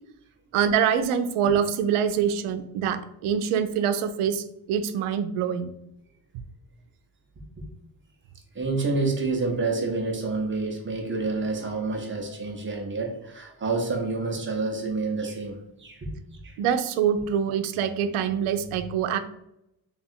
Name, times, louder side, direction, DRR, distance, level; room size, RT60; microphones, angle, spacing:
voice 1, 0.5-5.7 6.3-6.4 16.6-19.2, right 8 dB, 85° right, 10 dB, 0.6 m, -25 dB
voice 2, 8.5-16.1 16.4-16.6, right 3 dB, 25° right, 1 dB, 0.6 m, -28 dB
3.6 x 2.4 x 4.2 m, 0.82 s
cardioid pair, 155°, 50 cm